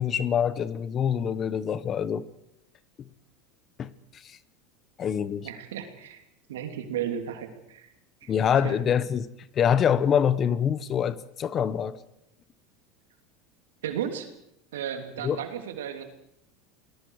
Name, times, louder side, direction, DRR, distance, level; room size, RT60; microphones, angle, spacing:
voice 1, 0.0-2.3 3.8-4.4 5.0-5.5 8.3-9.3 9.5-12.0 15.2-15.4, left 8 dB, 40° left, 17 dB, 1.2 m, -25 dB
voice 2, 5.4-6.2 6.5-7.9 8.2-8.3 8.6-8.8 13.8-14.3 14.7-16.0, right 9 dB, 85° right, 6 dB, 3.0 m, -34 dB
29.5 x 20.0 x 4.9 m, 0.78 s
hypercardioid pair, 95°, 0 cm